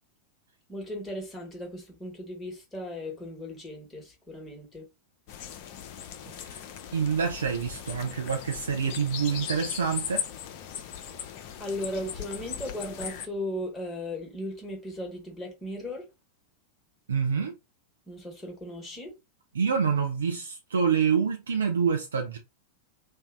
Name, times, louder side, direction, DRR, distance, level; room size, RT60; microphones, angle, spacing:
voice 1, 0.7-4.8 11.6-16.0 18.1-19.1, left 1 dB, 15° left, 1.1 m, -37 dB
sound 1, 5.3-13.3, left 9 dB, 45° left, 0.4 m, -38 dB
voice 2, 6.9-10.3 17.1-17.5 19.5-22.4, right 6 dB, 70° right, 0.4 m, -27 dB
2.6 x 2.2 x 3.4 m
figure-of-eight pair, 90°, 0 cm